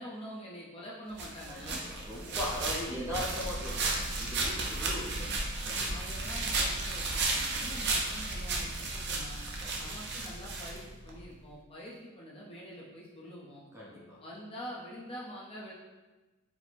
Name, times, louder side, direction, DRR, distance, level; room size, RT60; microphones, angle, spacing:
voice 1, 0.0-1.9 2.9-3.2 4.8-5.0 5.9-9.4 9.8-13.6 14.2-15.7, equal, 25° left, -5 dB, 0.7 m, -45 dB
sound 1, 1.2-11.2, right 2 dB, 50° right, 0.6 m, -34 dB
voice 2, 1.5-5.3 5.6-6.0 9.6-9.9 13.7-14.2, left 1 dB, 15° right, -6 dB, 0.7 m, -40 dB
4.5 x 2.1 x 4.1 m, 1.2 s
head